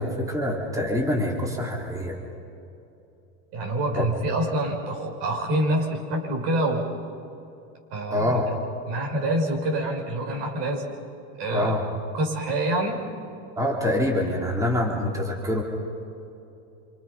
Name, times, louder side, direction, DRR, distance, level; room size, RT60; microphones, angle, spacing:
voice 1, 0.0-2.2 3.9-4.0 8.1-8.4 11.5-11.8 13.6-15.6, left 1 dB, 10° right, -1 dB, 3.4 m, -25 dB
voice 2, 3.5-6.9 7.9-8.4 8.9-10.9 11.4-11.8 12.1-13.0, right 1 dB, 70° right, 0 dB, 6.5 m, -26 dB
27.5 x 26.0 x 5.5 m, 2.8 s
supercardioid pair, 130°, 38 cm